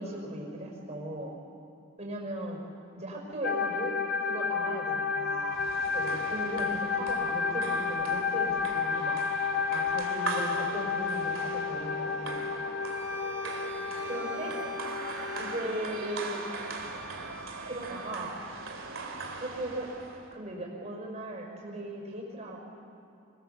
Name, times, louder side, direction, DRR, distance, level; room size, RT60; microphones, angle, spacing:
voice 1, 0.0-1.4 2.0-2.6 2.9-3.9 4.2-5.6 5.9-9.2 9.7-12.5 14.0-14.5 15.4-16.4 17.6-18.3 19.4-19.9 20.3-22.6, right 1 dB, 35° right, 0 dB, 5.5 m, -38 dB
sound 1, 3.4-15.6, left 5 dB, 50° left, 0.8 m, -31 dB
sound 2, 5.5-20.3, right 3 dB, 90° right, 2.6 m, -40 dB
Bowed string instrument, 12.8-18.2, right 4 dB, 30° left, 3.9 m, -46 dB
25.5 x 21.5 x 7.1 m, 2.6 s
head